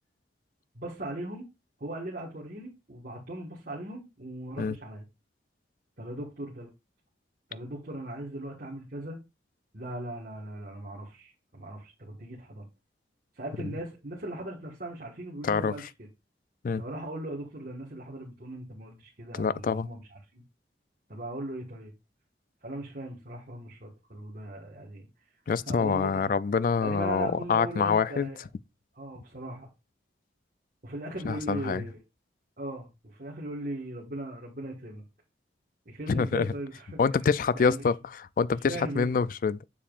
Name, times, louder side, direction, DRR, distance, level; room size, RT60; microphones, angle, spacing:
voice 1, 0.7-1.5 1.8-5.0 6.0-6.7 7.5-9.2 9.7-12.7 13.3-16.1 16.7-20.4 21.1-21.9 22.6-25.1 25.7-26.3 26.8-28.4 28.9-29.7 30.8-32.0 32.6-35.0 35.8-37.8 38.7-39.1, right 1 dB, 50° right, 1.6 m, -39 dB
voice 2, 19.3-19.9 25.5-28.3 31.2-31.8 36.1-36.5 37.0-38.0 38.4-39.6, left 5 dB, 50° left, 0.3 m, -26 dB
7.1 x 7.1 x 2.5 m
head